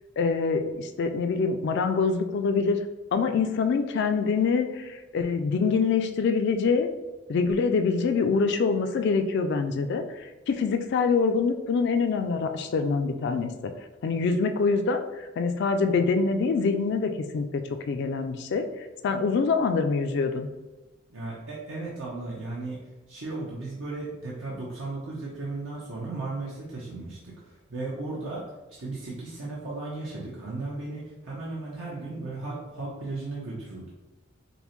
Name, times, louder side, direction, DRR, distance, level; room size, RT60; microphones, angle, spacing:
voice 1, 0.2-2.8 3.1-6.9 7.3-13.7 14.0-15.0 15.4-17.6 17.9-18.6 19.0-20.5, left 4 dB, 60° left, 7 dB, 0.3 m, -25 dB
voice 2, 21.1-22.8 23.1-28.4 28.8-33.9, right 2 dB, 80° right, -6 dB, 0.8 m, -35 dB
5.2 x 2.1 x 3.0 m, 1.1 s
head